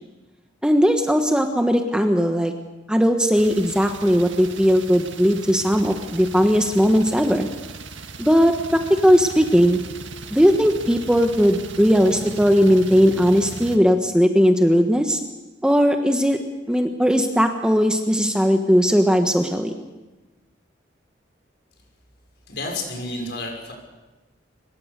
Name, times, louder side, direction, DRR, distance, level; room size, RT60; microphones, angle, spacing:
voice 1, 0.6-2.5 2.9-7.5 8.2-9.8 10.3-15.2 15.6-16.4 16.7-19.7, equal, 5° right, 5 dB, 1.3 m, -18 dB
sound 1, 3.3-13.8, right 4 dB, 90° right, 1.7 m, -38 dB
voice 2, 22.5-23.7, left 2 dB, 60° left, 1 dB, 6.2 m, -30 dB
24.0 x 22.0 x 6.8 m, 1.1 s
head